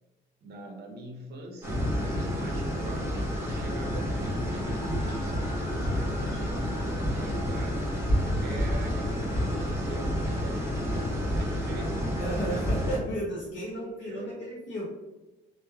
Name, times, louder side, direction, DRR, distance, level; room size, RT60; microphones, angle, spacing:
voice 1, 0.4-1.9 2.3-8.0 8.4-12.1 12.4-12.7 14.0-14.4, right 2 dB, 55° right, 2 dB, 0.6 m, -43 dB
sound 1, 1.6-13.0, equal, 15° right, 1.1 m, -29 dB
sound 2, 4.2-10.0 11.2-11.7 13.4-13.6, left 1 dB, 30° left, 0.4 m, -45 dB
voice 2, 12.2-14.8, right 1 dB, 55° left, -6 dB, 0.8 m, -33 dB
3.0 x 2.1 x 2.2 m, 1.1 s
cardioid pair, 90°, 20 cm